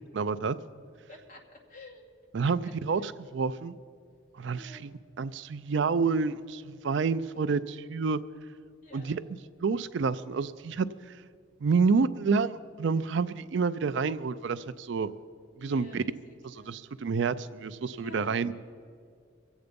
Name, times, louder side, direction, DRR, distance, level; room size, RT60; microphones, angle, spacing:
voice 1, 0.1-0.6 2.3-3.8 4.4-8.2 8.9-9.2 9.6-10.9 11.6-15.1 15.6-16.0 16.4-18.5, right 5 dB, 65° right, 14 dB, 0.4 m, -29 dB
voice 2, 1.1-1.4 1.7-2.0 2.4-3.1 4.5-4.8 8.8-9.2 15.6-16.8 17.9-18.5, left 1 dB, 40° left, -1 dB, 2.2 m, -49 dB
23.5 x 8.1 x 5.2 m, 2.2 s
head